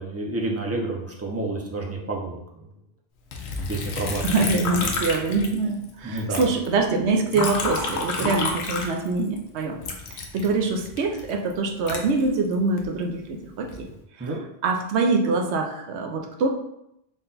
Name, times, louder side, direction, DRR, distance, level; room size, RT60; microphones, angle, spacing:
voice 1, 0.0-2.7 3.7-4.2 6.0-6.5 7.3-7.5 8.2-8.4 14.2-14.4, right 2 dB, 20° right, -1 dB, 0.4 m, -30 dB
Liquid, 3.3-5.9 6.2-9.4 9.8-12.8 13.4-13.9, left 3 dB, 90° left, 0.9 m, -30 dB
voice 2, 4.2-9.8 10.1-13.9 14.2-14.3 14.6-16.5, right 3 dB, 85° right, 3 dB, 0.9 m, -24 dB
3.8 x 2.2 x 3.9 m, 0.80 s
omnidirectional pair, 1.1 m